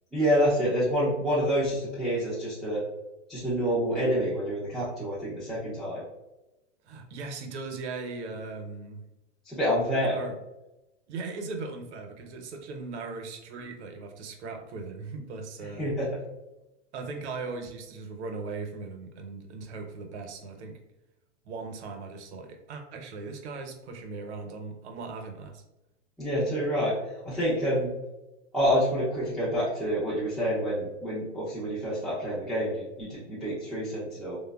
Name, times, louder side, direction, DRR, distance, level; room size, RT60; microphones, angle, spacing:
voice 1, 0.1-2.8 3.3-6.0 9.4-10.2 15.6-16.1 26.2-26.9 27.2-27.9 28.5-34.4, equal, ahead, -10 dB, 0.4 m, -27 dB
voice 2, 6.8-9.0 10.0-10.4 11.1-15.9 16.9-20.8 21.4-25.6, right 4 dB, 65° right, 4 dB, 0.7 m, -38 dB
3.1 x 2.1 x 2.2 m, 0.95 s
hypercardioid pair, 125°, 36 cm